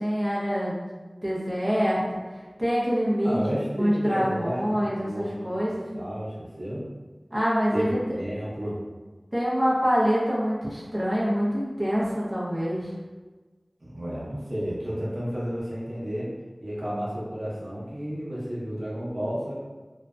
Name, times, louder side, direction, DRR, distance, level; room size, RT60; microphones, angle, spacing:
voice 1, 0.0-2.2 2.6-3.4 3.8-6.0 7.3-8.0 9.3-12.9, equal, 25° right, -7 dB, 0.6 m, -25 dB
voice 2, 3.2-5.5 5.9-6.8 7.7-8.8 13.8-16.3 16.6-19.5, equal, 70° right, -8 dB, 0.8 m, -32 dB
2.5 x 2.2 x 2.3 m, 1.3 s
wide cardioid pair, 45°, 0 cm